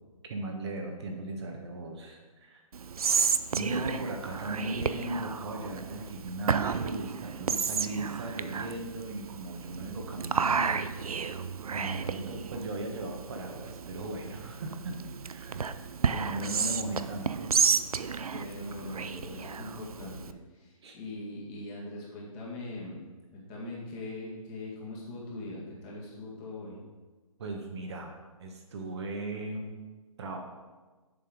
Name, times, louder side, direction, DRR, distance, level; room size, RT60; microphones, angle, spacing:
voice 1, 0.3-2.6 3.5-10.9 11.2-11.4 11.7-15.0 15.2-15.7 16.1-17.5 20.8-21.0 27.4-28.1 28.4-29.8 30.2-30.4, right 2 dB, 50° right, 1 dB, 1.2 m, -37 dB
Whispering, 2.7-20.3, right 6 dB, 80° right, 0.5 m, -32 dB
voice 2, 18.3-23.0 23.3-26.8, left 2 dB, 25° left, -4 dB, 2.0 m, -41 dB
7.2 x 5.5 x 5.1 m, 1.3 s
figure-of-eight pair, 145°, 18 cm